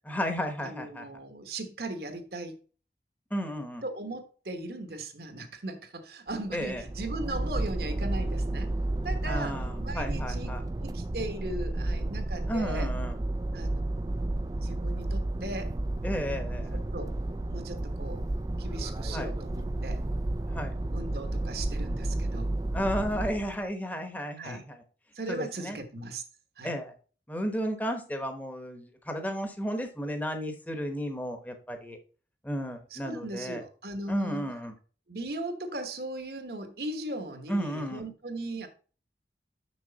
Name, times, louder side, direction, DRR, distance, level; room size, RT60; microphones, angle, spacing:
voice 1, 0.1-1.1 3.3-3.8 6.5-6.8 9.3-10.6 12.5-13.2 16.0-16.8 19.1-19.3 20.5-20.7 22.7-24.8 25.3-25.8 26.6-26.9 27.3-32.0 32.4-33.6 34.1-34.7 37.5-38.0, equal, 10° left, 1.0 m, -33 dB
voice 2, 0.6-2.6 3.8-8.7 9.0-10.5 10.8-12.9 13.5-14.0 14.6-15.7 16.7-17.1 17.5-18.3 18.6-20.0 20.9-22.5 24.4-24.6 25.1-26.2 26.6-26.7 32.9-34.5 35.1-38.7, right 2 dB, 65° right, 1.2 m, -38 dB
sound 1, 6.3-23.6, right 1 dB, 20° right, 0.3 m, -32 dB
6.5 x 6.3 x 4.0 m
head